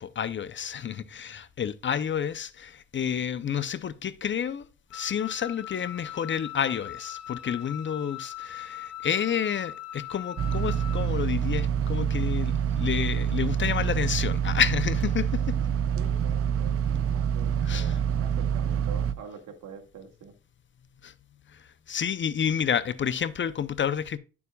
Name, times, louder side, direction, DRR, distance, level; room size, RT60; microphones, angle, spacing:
voice 1, 0.0-4.7 4.9-15.6 17.6-18.0 21.0-21.1 21.5-24.2, left 8 dB, 40° left, 0.6 m, -30 dB
Wind instrument woodwind instrument, 4.9-11.1, left 12 dB, 55° left, 1.1 m, -41 dB
sound 1, 10.4-19.1, right 8 dB, 50° right, 0.6 m, -26 dB
voice 2, 16.0-20.3, right 6 dB, 75° right, 1.9 m, -45 dB
9.6 x 7.0 x 2.3 m
cardioid pair, 90°, 30 cm